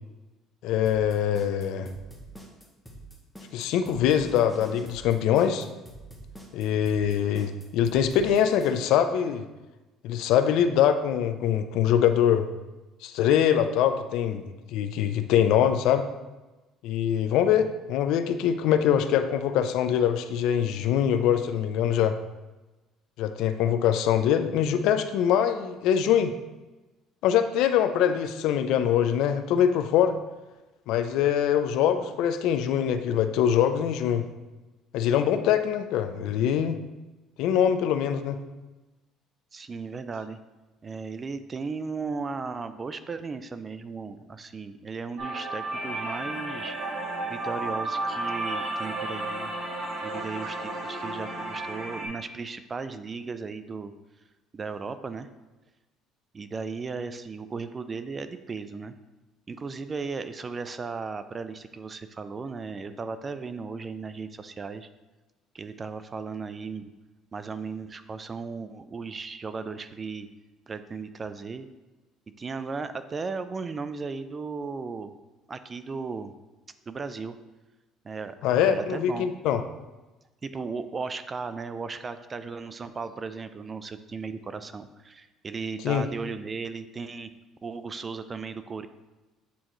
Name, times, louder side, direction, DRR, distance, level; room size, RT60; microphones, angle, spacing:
voice 1, 0.6-1.9 3.5-5.7 6.5-9.5 10.0-12.5 13.0-14.4 14.7-16.1 16.8-22.2 23.2-26.3 27.2-30.1 30.9-34.2 34.9-36.8 37.4-38.4 78.4-79.6 85.8-86.1, left 9 dB, 75° left, 9 dB, 0.4 m, -23 dB
sound 1, 0.9-8.8, right 1 dB, ahead, 1.1 m, -45 dB
voice 2, 39.5-40.4 40.8-46.8 47.2-49.5 50.0-53.9 54.5-55.3 56.3-58.9 59.5-64.9 65.5-66.9 67.3-70.3 70.7-71.7 72.4-75.1 75.5-76.3 76.9-77.4 78.0-79.3 80.4-87.3 87.6-88.9, right 4 dB, 30° right, 11 dB, 0.4 m, -36 dB
sound 2, 45.2-52.1, right 2 dB, 65° right, 1.6 m, -32 dB
8.4 x 3.7 x 3.0 m, 1.1 s
cardioid pair, 115°, 0 cm